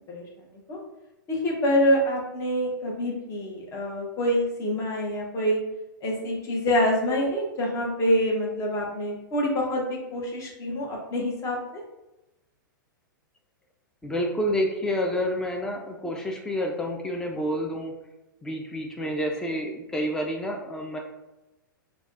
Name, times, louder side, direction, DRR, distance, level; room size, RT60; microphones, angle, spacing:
voice 1, 0.1-0.8 1.3-5.6 6.0-11.8, equal, 25° left, -2 dB, 0.9 m, -26 dB
voice 2, 14.0-17.9 18.4-21.0, equal, 5° left, 1 dB, 0.5 m, -29 dB
5.8 x 2.3 x 2.5 m, 0.98 s
figure-of-eight pair, 105°, 11 cm